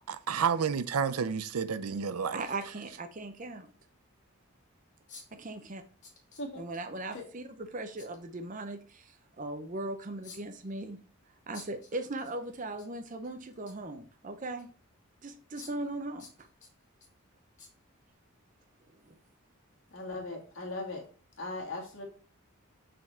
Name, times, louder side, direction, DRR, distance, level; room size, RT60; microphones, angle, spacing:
voice 1, 0.0-2.4, right 6 dB, 90° right, 0.5 m, -30 dB
voice 2, 2.3-3.7 5.3-5.8 6.5-11.0 11.5-14.7 15.2-16.3 19.0-19.2, right 2 dB, 35° right, 0.6 m, -39 dB
sound 1, 3.1-3.2 3.8-3.9 5.1-5.5 6.0-6.8 8.0-8.2 10.2-10.7 11.5-12.3 12.6-12.9 13.2-13.9 14.6-14.7 15.5-15.9 16.2-17.1 17.6-17.7 18.1-18.2, left 4 dB, 35° left, 1.9 m, -51 dB
voice 3, 19.9-21.0 21.4-22.1, left 2 dB, 60° left, 1.8 m, -38 dB
6.5 x 4.2 x 4.3 m
head